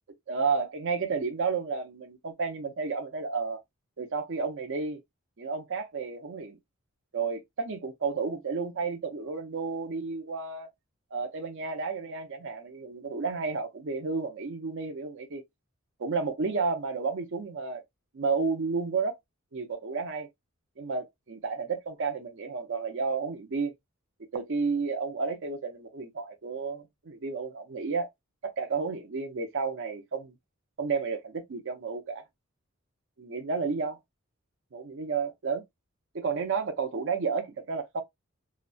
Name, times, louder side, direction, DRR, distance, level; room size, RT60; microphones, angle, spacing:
voice 1, 0.3-3.6 4.0-5.0 5.4-6.6 7.1-10.7 11.1-15.4 16.0-17.8 18.1-19.2 19.5-20.3 20.8-23.7 24.3-28.1 28.4-30.3 30.8-32.2 33.2-34.0 34.7-35.6 36.1-38.0, right 4 dB, 60° right, 0.6 m, -31 dB
2.7 x 2.1 x 2.6 m
head